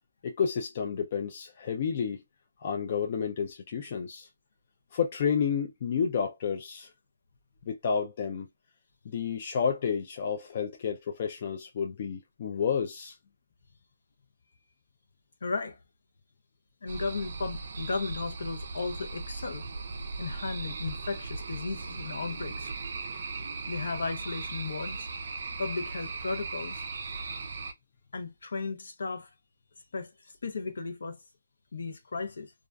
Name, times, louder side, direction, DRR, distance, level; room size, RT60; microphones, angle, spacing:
voice 1, 0.2-2.2 2.6-4.3 4.9-6.9 7.7-8.5 9.1-13.2, left 6 dB, 35° left, 0.3 m, -30 dB
voice 2, 15.4-15.8 16.8-19.6 20.2-22.7 23.7-25.1 25.6-26.8 28.1-29.3 29.9-31.2 31.7-32.5, left 4 dB, 70° left, 0.7 m, -35 dB
sound 1, 16.9-27.7, right 3 dB, 50° right, 0.4 m, -38 dB
2.3 x 2.2 x 2.4 m
hypercardioid pair, 165°, 0 cm